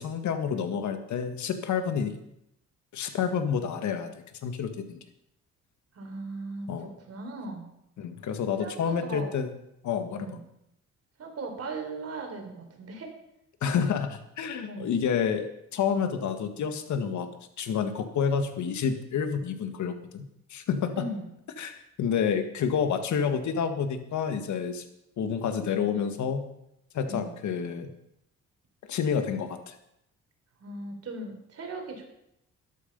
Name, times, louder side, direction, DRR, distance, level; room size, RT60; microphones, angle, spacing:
voice 1, 0.0-2.2 2.9-4.1 4.4-5.0 6.7-6.9 8.0-9.5 9.8-10.3 13.6-17.3 17.6-21.1 21.6-24.8 25.2-26.5 26.9-27.9 28.9-29.8, left 7 dB, 70° left, 8 dB, 1.8 m, -29 dB
voice 2, 5.9-7.7 8.6-9.4 10.2-10.4 11.2-13.1 14.7-14.9 20.9-21.3 27.1-27.3 30.6-32.1, right 3 dB, 55° right, 3 dB, 3.9 m, -38 dB
13.5 x 11.5 x 5.4 m, 0.80 s
cardioid pair, 90°, 30 cm